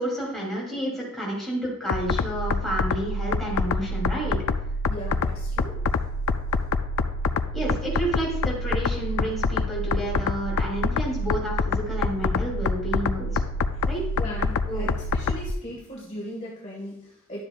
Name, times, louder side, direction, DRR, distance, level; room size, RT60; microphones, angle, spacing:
voice 1, 0.0-4.4 7.5-13.4 13.9-14.0 14.7-14.9, right 1 dB, ahead, -5 dB, 2.9 m, -30 dB
sound 1, 1.9-15.5, left 3 dB, 80° left, 0.4 m, -26 dB
voice 2, 4.9-5.7 13.7-13.9 14.2-17.4, equal, 30° left, -4 dB, 1.6 m, -38 dB
11.5 x 7.4 x 2.4 m, 0.82 s
head